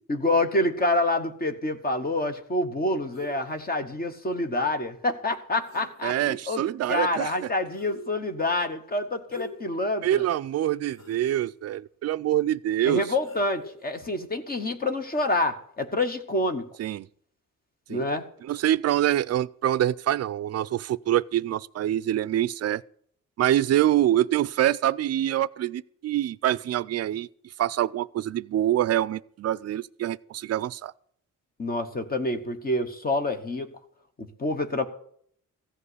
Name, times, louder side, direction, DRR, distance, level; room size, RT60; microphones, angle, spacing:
voice 1, 0.1-6.6 6.9-10.2 12.9-16.7 17.9-18.2 31.6-33.7 34.2-34.9, left 2 dB, 30° left, 1.1 m, -27 dB
sound 1, 3.1-3.7 5.3-5.4 5.6-6.6 7.7-8.3 9.3-9.8 10.3-10.4 10.9-11.4 13.2-14.1 15.1-15.3, left 2 dB, 55° left, 5.0 m, -46 dB
voice 2, 6.0-7.3 10.0-13.1 16.8-17.1 17.9-18.1 18.4-22.8 23.4-27.3 27.6-30.9, right 12 dB, 50° right, 0.4 m, -25 dB
15.0 x 5.4 x 9.7 m
wide cardioid pair, 160°, 33 cm